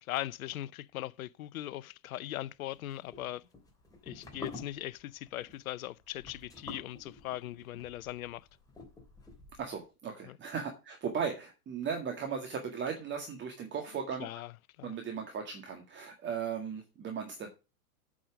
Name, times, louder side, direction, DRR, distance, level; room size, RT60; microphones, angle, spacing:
voice 1, 0.0-3.5 4.0-8.5 10.2-10.4 14.2-14.5 14.8-15.0, left 14 dB, 70° left, 0.7 m, -40 dB
sound 1, 2.8-9.8, left 3 dB, 10° left, 3.2 m, -49 dB
voice 2, 9.6-14.3 14.8-17.5, right 6 dB, 25° right, 1.9 m, -37 dB
8.5 x 6.2 x 6.2 m
hypercardioid pair, 110°, 44 cm